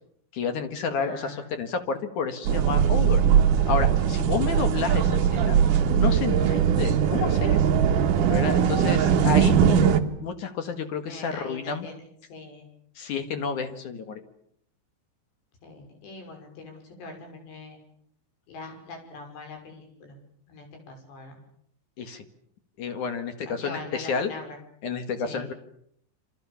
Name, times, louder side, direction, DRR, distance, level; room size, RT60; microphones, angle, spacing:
voice 1, 0.3-3.2 3.7-5.6 5.9-7.7 8.3-9.8 10.2-11.9 13.0-14.2 22.0-22.2 22.8-24.3 24.8-25.5, left 5 dB, 55° left, 9 dB, 2.8 m, -30 dB
voice 2, 1.0-1.5 6.3-6.8 11.1-12.0 12.3-12.7 15.6-17.8 18.5-20.2 20.5-21.4 23.5-24.6 25.2-25.5, left 3 dB, 75° left, 4 dB, 8.3 m, -42 dB
sound 1, 2.4-10.0, right 8 dB, 60° right, 2.6 m, -20 dB
27.5 x 26.0 x 7.2 m, 0.69 s
omnidirectional pair, 5.0 m